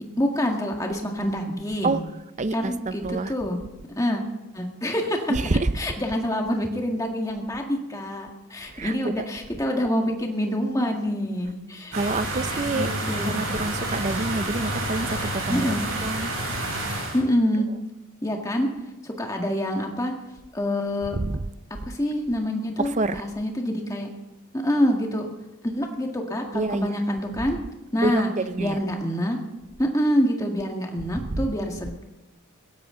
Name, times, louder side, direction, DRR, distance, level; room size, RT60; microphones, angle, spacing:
voice 1, 0.0-2.0 2.5-3.6 4.0-4.2 4.5-5.3 5.7-11.9 12.5-13.4 15.5-15.8 17.1-17.7 18.2-18.7 19.0-20.1 20.5-21.2 21.9-24.1 24.5-25.3 25.6-27.6 27.9-28.3 28.6-29.4 29.8-32.0, equal, 15° left, 1.9 m, -26 dB
voice 2, 2.4-3.3 5.3-5.7 8.7-9.2 11.9-12.9 13.3-15.7 16.0-16.3 21.1-21.4 22.8-23.2 26.5-26.9 28.0-28.8 31.3-31.4, right 2 dB, 30° right, 0.6 m, -27 dB
sound 1, 11.9-17.2, right 1 dB, 75° right, 8.0 m, -29 dB
21.0 x 16.5 x 3.9 m
head